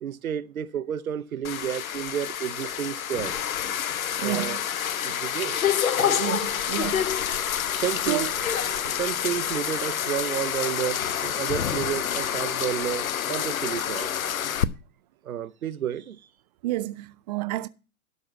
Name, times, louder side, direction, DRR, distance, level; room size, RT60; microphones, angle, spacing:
voice 1, 0.0-3.4 4.2-4.6 5.0-5.6 5.9-6.2 7.6-8.3 8.7-14.2 15.2-16.2, right 9 dB, 70° right, 0.9 m, -31 dB
sound 1, 1.4-14.6, left 9 dB, 70° left, 0.8 m, -28 dB
voice 2, 4.2-4.6 6.2-7.1 8.1-8.3 16.6-17.7, right 17 dB, 30° right, 0.5 m, -30 dB
12.5 x 4.9 x 7.2 m
figure-of-eight pair, 110°, 43 cm